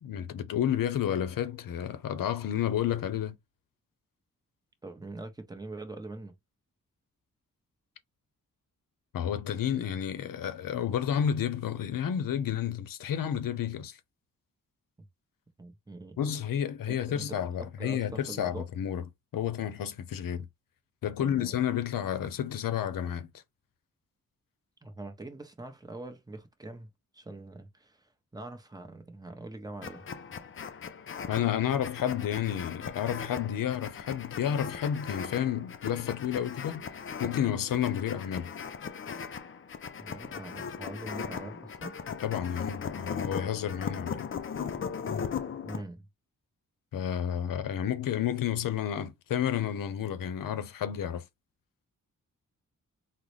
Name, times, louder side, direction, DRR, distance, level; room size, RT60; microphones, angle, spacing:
voice 1, 0.0-3.4 9.1-14.0 16.2-19.0 19.3-20.5 21.0-23.3 31.3-36.8 37.2-38.5 42.2-44.3 46.9-51.3, left 9 dB, 90° left, 0.6 m, -31 dB
voice 2, 4.8-6.3 15.6-16.2 16.9-17.4 17.8-18.7 21.2-21.7 24.8-26.9 27.1-30.0 40.0-42.0 45.6-46.1, right 2 dB, 10° right, 0.8 m, -43 dB
sound 1, 29.8-45.8, left 6 dB, 40° left, 0.5 m, -38 dB
3.9 x 2.1 x 3.1 m
wide cardioid pair, 105°, 32 cm